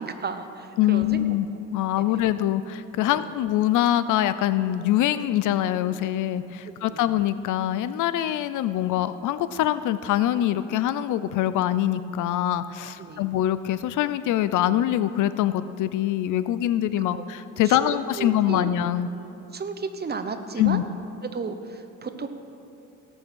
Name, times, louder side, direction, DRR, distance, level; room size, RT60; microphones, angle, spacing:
voice 1, 0.0-1.2 2.0-2.2 3.1-3.3 6.6-7.1 13.0-13.3 17.1-17.2 17.6-18.7 19.5-20.8 21.2-22.3, right 5 dB, 35° right, 8 dB, 1.0 m, -34 dB
voice 2, 0.8-1.5 1.7-19.1 20.6-20.8, left 12 dB, 80° left, 14 dB, 0.5 m, -24 dB
17.5 x 6.4 x 6.3 m, 2.9 s
cardioid pair, 90°, 30 cm